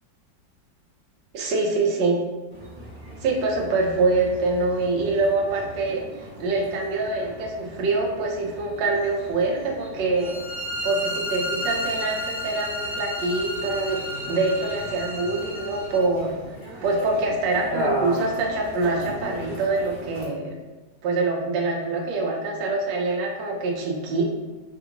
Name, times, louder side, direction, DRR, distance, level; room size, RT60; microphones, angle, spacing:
voice 1, 1.3-2.2 3.2-6.1 6.4-10.4 10.8-14.0 14.3-16.4 16.8-20.6 21.0-24.3, right 3 dB, 75° right, 0 dB, 1.2 m, -25 dB
sound 1, 2.5-20.3, equal, 40° right, 0.7 m, -37 dB
sound 2, 10.2-16.0, equal, 50° left, 1.4 m, -32 dB
3.4 x 2.4 x 2.8 m, 1.2 s
omnidirectional pair, 2.0 m